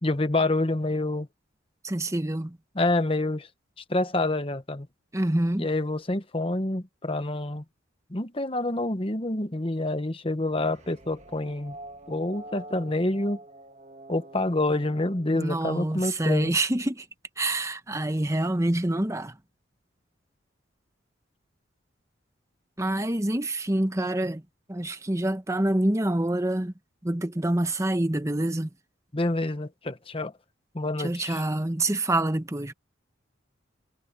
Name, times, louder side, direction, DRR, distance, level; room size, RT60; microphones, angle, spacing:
voice 1, 0.0-1.3 2.7-3.5 3.8-4.9 5.6-7.6 8.1-11.8 12.1-13.4 14.1-16.5 29.1-30.3 30.7-31.4, left 2 dB, 25° left, 1.1 m, -27 dB
voice 2, 1.8-2.6 5.1-5.7 15.3-17.1 17.4-19.4 22.8-24.4 24.7-26.7 27.0-28.7 31.0-32.7, right 1 dB, 15° right, 1.0 m, -26 dB
sound 1, 10.5-16.0, right 1 dB, 35° right, 1.5 m, -47 dB
head